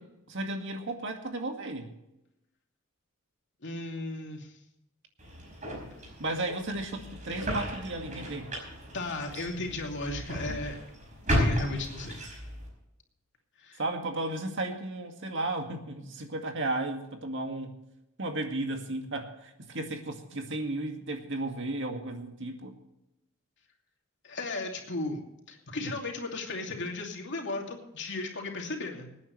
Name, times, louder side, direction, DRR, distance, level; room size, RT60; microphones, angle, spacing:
voice 1, 0.3-1.9 6.2-8.5 13.8-17.8 18.2-22.8, right 2 dB, 60° right, 4 dB, 2.1 m, -34 dB
voice 2, 3.6-4.5 8.9-10.8 11.3-12.2 13.6-13.8 24.2-25.2 25.5-29.1, left 2 dB, 55° left, 1 dB, 2.8 m, -35 dB
sound 1, 5.2-12.7, equal, 35° right, 5.2 m, -34 dB
25.0 x 9.6 x 3.3 m, 0.90 s
head